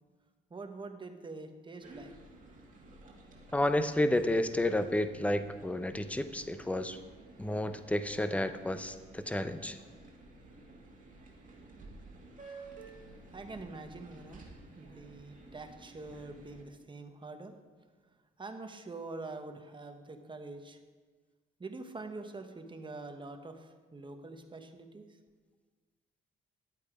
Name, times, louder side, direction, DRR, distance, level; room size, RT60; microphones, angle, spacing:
voice 1, 0.5-2.1 13.3-14.4 14.8-17.5 18.4-20.8 21.6-25.0, right 3 dB, 25° right, 6 dB, 1.2 m, -45 dB
sound 1, 1.8-16.6, right 2 dB, 40° right, 2.2 m, -53 dB
voice 2, 3.5-7.0 7.4-9.8, left 1 dB, 5° left, 10 dB, 0.7 m, -31 dB
10.5 x 8.3 x 5.0 m, 1.4 s
cardioid pair, 90°, 20 cm